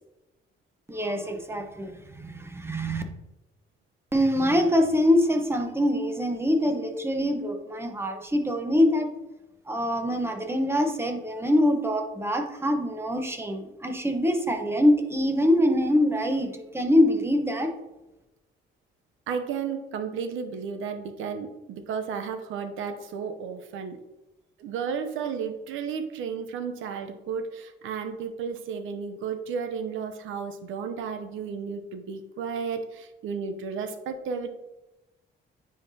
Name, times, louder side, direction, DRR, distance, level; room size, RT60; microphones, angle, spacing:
voice 1, 0.9-3.0 4.1-9.1 9.7-17.7, left 1 dB, 10° right, 4 dB, 1.0 m, -24 dB
voice 2, 19.3-24.0 24.6-34.5, right 6 dB, 85° right, 8 dB, 0.7 m, -33 dB
9.6 x 3.9 x 2.8 m, 1.0 s
cardioid pair, 90°, 20 cm